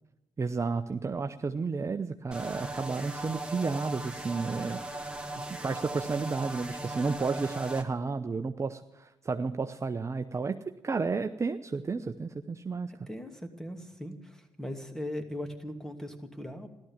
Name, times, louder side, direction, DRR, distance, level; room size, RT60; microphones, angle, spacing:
voice 1, 0.4-5.0 5.6-10.6 10.8-13.1, right 4 dB, 30° right, 7 dB, 0.8 m, -32 dB
sound 1, 2.3-7.8, right 2 dB, 10° right, 2.0 m, -38 dB
voice 2, 12.9-16.7, left 1 dB, 5° left, 5 dB, 2.5 m, -39 dB
14.5 x 13.0 x 7.3 m, 0.95 s
supercardioid pair, 60°, 9 cm